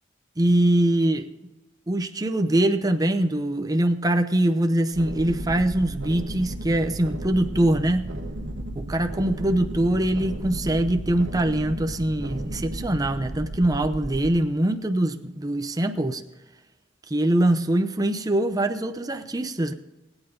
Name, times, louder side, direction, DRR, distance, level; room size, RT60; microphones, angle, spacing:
voice 1, 0.4-1.3 1.9-8.1 8.7-16.2 17.1-19.7, right 1 dB, 20° right, 0.7 m, -23 dB
sound 1, 4.9-14.4, right 1 dB, 80° right, 1.5 m, -34 dB
20.5 x 9.0 x 3.8 m
head